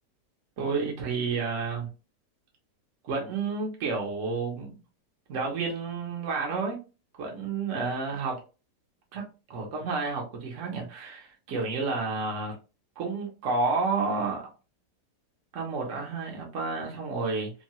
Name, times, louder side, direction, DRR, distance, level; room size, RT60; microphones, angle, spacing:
voice 1, 0.6-1.9 3.0-4.8 5.3-6.8 7.2-8.4 9.1-12.5 13.0-14.4 15.5-17.5, right 4 dB, 55° right, 1.0 m, -30 dB
3.0 x 2.2 x 2.7 m
omnidirectional pair, 1.8 m